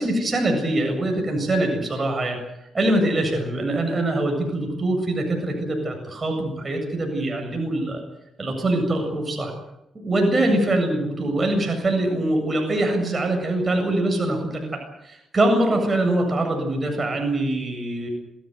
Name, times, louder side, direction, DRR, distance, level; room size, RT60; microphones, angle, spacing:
voice 1, 0.0-2.4 2.7-8.0 8.4-9.5 10.0-18.1, right 1 dB, 30° right, 3 dB, 7.7 m, -23 dB
27.0 x 17.0 x 8.1 m, 0.87 s
cardioid pair, 80°, 0 cm